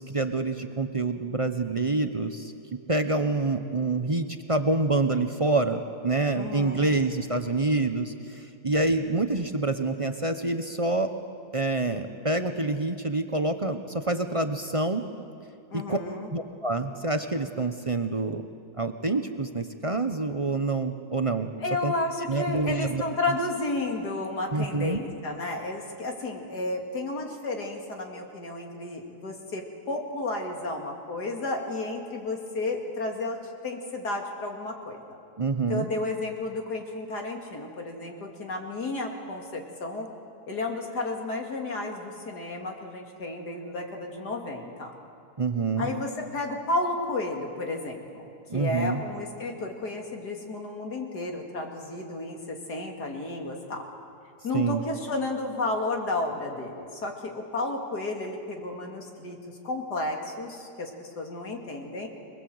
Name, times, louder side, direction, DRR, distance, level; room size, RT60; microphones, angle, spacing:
voice 1, 0.0-2.5 2.9-11.1 11.5-15.0 15.7-16.0 16.3-18.4 18.8-21.5 21.8-21.9 22.3-23.0 24.5-25.0 35.4-35.9 45.4-45.9 48.5-49.0 54.5-54.8, right 3 dB, 30° right, 7 dB, 0.7 m, -27 dB
voice 2, 6.3-6.9 15.7-16.3 21.6-35.2 35.7-40.1 40.5-44.9 45.8-53.8 54.4-62.1, left 2 dB, 90° left, 2 dB, 3.1 m, -32 dB
26.0 x 20.5 x 7.9 m, 2.5 s
omnidirectional pair, 1.7 m